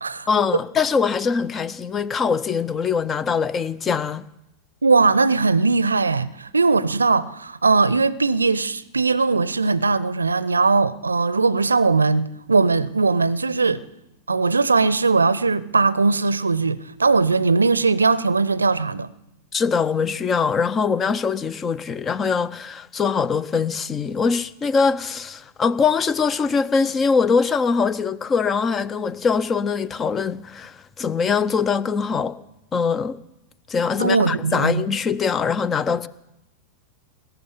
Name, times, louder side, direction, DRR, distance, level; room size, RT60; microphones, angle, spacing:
voice 1, 0.3-4.2 19.5-32.4 32.7-33.2 33.7-36.1, left 5 dB, 20° left, 0.6 m, -22 dB
voice 2, 4.8-13.8 14.3-19.1 34.0-34.8, right 4 dB, 75° right, 0.6 m, -19 dB
20.0 x 7.1 x 9.8 m
figure-of-eight pair, 90°, 0 cm